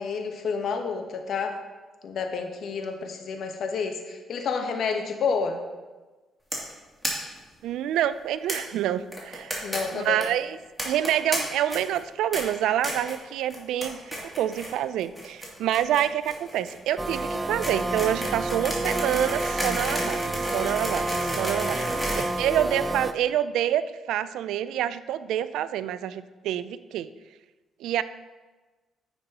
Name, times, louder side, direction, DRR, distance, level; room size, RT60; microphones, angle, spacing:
voice 1, 0.0-1.6 2.0-5.6 9.6-10.2, left 5 dB, 65° left, 5 dB, 1.0 m, -29 dB
sound 1, 6.5-6.7 7.0-7.1 7.4-7.5 7.7-7.8 8.5-8.6 9.1-9.8 10.0-10.2 10.8-11.4 11.7-12.0 12.3-12.4 12.8-13.2 13.5-13.9 14.1-14.7 15.0-23.0, equal, 5° left, 2.6 m, -32 dB
voice 2, 7.6-9.5 9.9-10.6 10.8-20.2 20.5-22.1 22.4-27.1 27.8-28.0, right 11 dB, 85° right, 14 dB, 0.3 m, -27 dB
sound 2, 17.0-23.1, right 2 dB, 15° right, 0.5 m, -29 dB
9.9 x 6.7 x 2.9 m, 1.3 s
cardioid pair, 90°, 0 cm